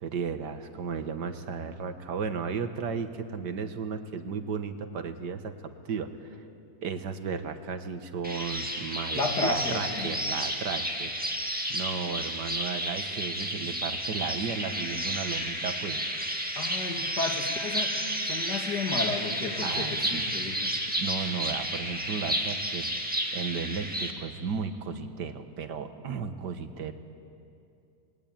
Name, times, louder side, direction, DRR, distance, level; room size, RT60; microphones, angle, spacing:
voice 1, 0.0-6.4 6.8-11.1 11.7-16.1 19.6-20.3 21.0-22.9 23.3-26.9, right 5 dB, 75° right, 8 dB, 2.0 m, -34 dB
sound 1, 8.2-24.1, right 1 dB, 5° right, 2.0 m, -31 dB
voice 2, 9.1-10.1 16.6-20.7, left 3 dB, 70° left, 3 dB, 2.9 m, -32 dB
28.5 x 21.0 x 8.8 m, 2.6 s
omnidirectional pair, 1.8 m